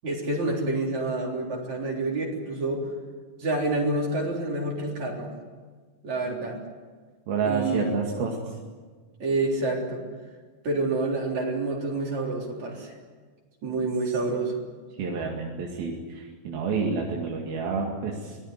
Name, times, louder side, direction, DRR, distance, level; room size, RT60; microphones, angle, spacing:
voice 1, 0.0-2.9 3.4-5.3 6.0-6.6 7.4-8.0 9.2-10.0 10.6-12.9 13.6-14.5, right 2 dB, 50° right, -1 dB, 4.9 m, -28 dB
voice 2, 7.3-8.6 14.0-14.1 15.0-18.4, right 5 dB, 85° right, -1 dB, 4.1 m, -29 dB
25.0 x 19.0 x 9.8 m, 1.5 s
omnidirectional pair, 4.2 m